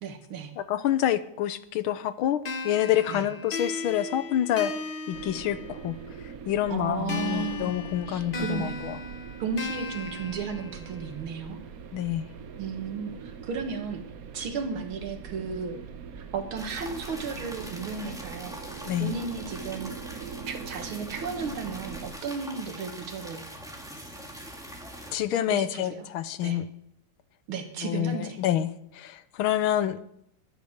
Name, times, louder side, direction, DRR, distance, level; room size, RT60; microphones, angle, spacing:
voice 1, 0.0-0.5 3.1-3.3 6.7-8.9 9.4-11.6 12.6-14.0 14.3-15.8 16.1-18.6 19.0-20.0 20.5-23.4 25.3-26.1 26.4-26.6 27.5-28.4, right 5 dB, 90° right, 6 dB, 2.4 m, -34 dB
voice 2, 0.6-4.7 5.1-6.0 6.5-9.0 11.9-12.3 18.9-19.1 25.1-26.6 27.8-30.0, left 11 dB, 90° left, 14 dB, 1.7 m, -27 dB
sound 1, 2.4-6.1 7.1-11.1, left 3 dB, 40° left, 0.8 m, -36 dB
sound 2, 5.1-22.1, right 6 dB, 55° right, 1.1 m, -42 dB
sound 3, 16.6-25.2, equal, ahead, 1.8 m, -43 dB
12.5 x 10.5 x 6.5 m, 0.73 s
omnidirectional pair, 2.2 m